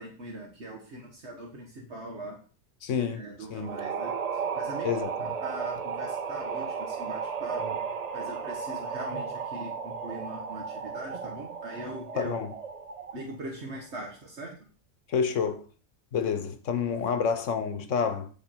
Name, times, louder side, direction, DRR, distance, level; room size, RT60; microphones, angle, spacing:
voice 1, 0.0-2.4 3.0-4.9 5.2-7.7 8.1-12.3 13.1-14.6, right 1 dB, 65° right, 1.6 m, -41 dB
voice 2, 2.8-3.2 3.5-3.7 4.8-5.3 12.2-12.5 15.1-15.6 16.1-18.3, left 6 dB, 90° left, 1.3 m, -29 dB
sound 1, 3.6-13.3, right 6 dB, 45° right, 0.6 m, -34 dB
9.3 x 5.2 x 4.5 m
omnidirectional pair, 1.2 m